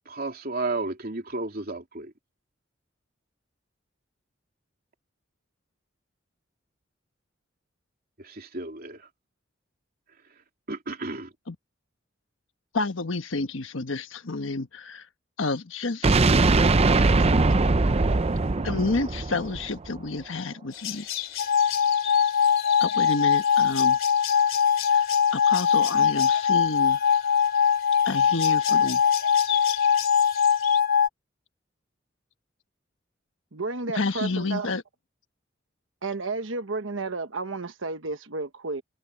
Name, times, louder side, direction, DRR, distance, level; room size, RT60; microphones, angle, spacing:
voice 1, 0.1-2.1 8.2-9.1 10.7-11.3, right 3 dB, 50° right, 3.0 m, -33 dB
voice 2, 12.7-15.0 15.4-16.2 18.6-21.1 22.8-24.0 24.9-27.0 28.0-29.0 33.9-34.8, left 3 dB, 75° left, 1.3 m, -30 dB
sound 1, 16.0-20.0, right 3 dB, 30° right, 0.6 m, -21 dB
sound 2, 20.7-30.8, left 12 dB, 90° left, 3.0 m, -37 dB
sound 3, 21.4-31.1, left 7 dB, 50° left, 1.0 m, -22 dB
voice 3, 33.5-34.7 36.0-38.8, right 3 dB, 75° right, 1.2 m, -32 dB
head